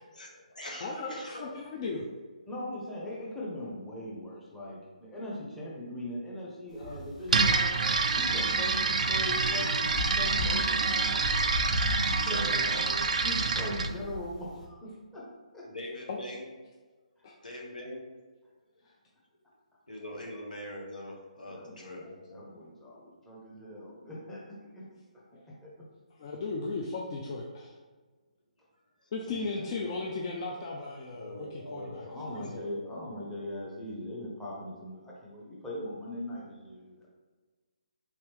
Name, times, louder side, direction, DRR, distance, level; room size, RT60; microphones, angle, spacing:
voice 1, 0.1-1.6 12.2-13.2 15.6-16.5 17.4-18.0 19.9-22.5 29.0-29.1 31.1-33.0, equal, 85° left, -1 dB, 1.0 m, -42 dB
voice 2, 0.8-2.0 16.1-16.2 17.2-17.3 26.2-27.7 29.1-32.1 32.3-32.5, left 3 dB, 40° left, -2 dB, 0.4 m, -36 dB
voice 3, 2.5-7.9 8.1-11.3 11.7-12.4 13.2-15.7 21.4-22.0 22.3-24.8 25.3-25.7 29.3-29.8 32.0-37.1, left 1 dB, 5° left, -7 dB, 0.8 m, -40 dB
sound 1, 6.8-14.6, left 1 dB, 70° left, 1.3 m, -38 dB
sound 2, 7.3-13.9, right 4 dB, 70° right, 0.4 m, -27 dB
3.6 x 2.9 x 3.4 m, 1.4 s
figure-of-eight pair, 145°, 4 cm